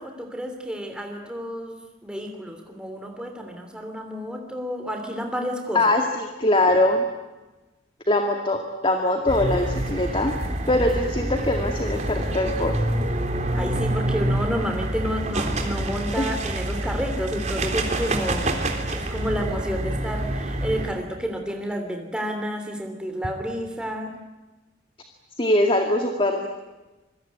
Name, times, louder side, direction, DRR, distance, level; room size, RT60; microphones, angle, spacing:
voice 1, 0.0-5.8 13.5-18.5 18.9-24.2, equal, 5° right, 3 dB, 3.1 m, -30 dB
voice 2, 5.7-7.1 8.1-10.4 10.7-12.8 16.2-16.3 25.4-26.5, left 1 dB, 25° left, 4 dB, 2.1 m, -22 dB
sound 1, 9.3-20.9, right 1 dB, 40° right, 3.5 m, -27 dB
26.5 x 23.0 x 9.5 m, 1.1 s
head